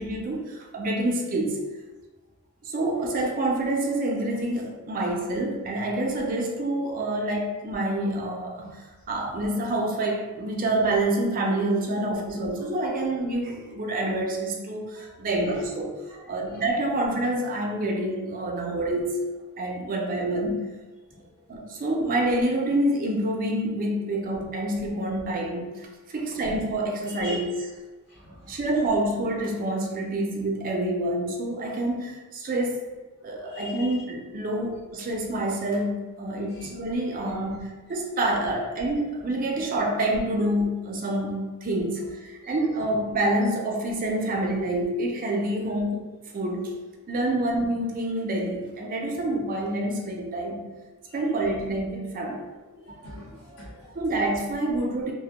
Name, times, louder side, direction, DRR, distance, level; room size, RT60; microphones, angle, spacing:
voice 1, 0.0-1.6 2.6-8.8 9.1-15.9 16.3-19.2 19.6-20.7 21.5-27.6 28.5-32.9 33.2-46.0 46.3-46.7 47.1-50.6 51.1-52.4 53.9-55.1, right 1 dB, 40° right, 1 dB, 0.4 m, -27 dB
voice 2, 14.9-15.6 16.5-16.6 27.1-27.4 28.1-28.6 33.2-33.9 42.4-42.6 52.9-53.9, left 1 dB, 70° left, -7 dB, 0.8 m, -42 dB
2.1 x 2.0 x 2.8 m, 1.2 s
head